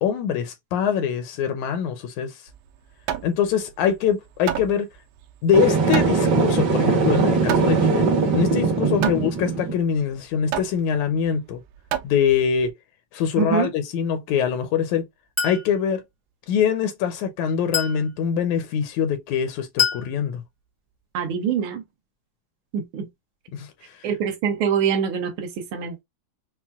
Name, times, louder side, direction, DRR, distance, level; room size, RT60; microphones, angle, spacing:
voice 1, 0.0-2.4 3.2-4.9 5.4-8.1 8.3-11.6 12.0-12.7 13.1-15.1 15.4-16.0 16.5-20.4 23.5-23.7 24.0-24.1, left 7 dB, 80° left, 1.9 m, -23 dB
Hammer, 2.5-12.7, right 11 dB, 85° right, 2.0 m, -33 dB
sound 1, 5.5-9.7, right 4 dB, 50° right, 1.4 m, -20 dB
voice 2, 13.4-13.7 21.1-21.8 22.7-23.1 24.0-26.0, right 7 dB, 70° right, 1.3 m, -24 dB
Chink clink, 15.4-15.7 17.7-18.1 19.8-20.1, left 7 dB, 15° left, 0.5 m, -24 dB
5.7 x 2.1 x 2.3 m
omnidirectional pair, 3.4 m